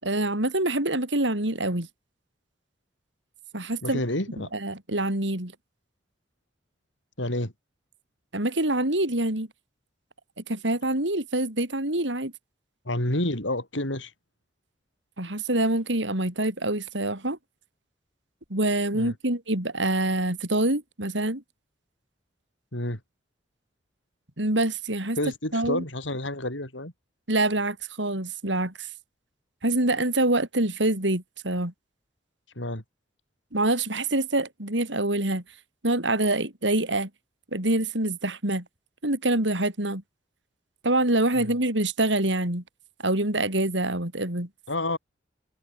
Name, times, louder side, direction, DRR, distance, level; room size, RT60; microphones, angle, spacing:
voice 1, 0.0-1.9 3.5-4.0 4.5-5.5 8.3-9.5 10.5-12.3 15.2-17.4 18.5-21.4 24.4-25.2 25.5-25.8 27.3-28.9 29.6-31.7 33.5-35.4 35.8-37.1 37.5-38.6 39.0-40.0 40.8-42.6 43.0-44.5, right 1 dB, 70° right, 5.0 m, -25 dB
voice 2, 3.8-4.5 7.2-7.5 12.9-14.1 18.9-19.1 22.7-23.0 25.2-26.9 32.6-32.8 41.4-41.5 44.7-45.0, left 1 dB, 80° left, 7.0 m, -29 dB
head